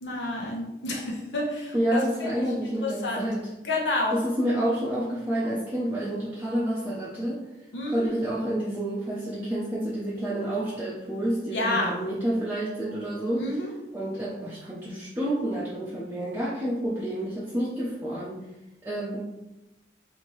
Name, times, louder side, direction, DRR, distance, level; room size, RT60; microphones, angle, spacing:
voice 1, 0.0-3.3 3.6-4.2 7.7-8.1 11.5-12.0 13.4-13.7, left 2 dB, 90° left, -2 dB, 1.0 m, -30 dB
voice 2, 1.7-3.4 4.1-7.4 7.9-13.4 13.9-18.4 18.8-19.2, right 1 dB, 10° right, -8 dB, 0.6 m, -29 dB
4.4 x 2.8 x 3.0 m, 0.95 s
head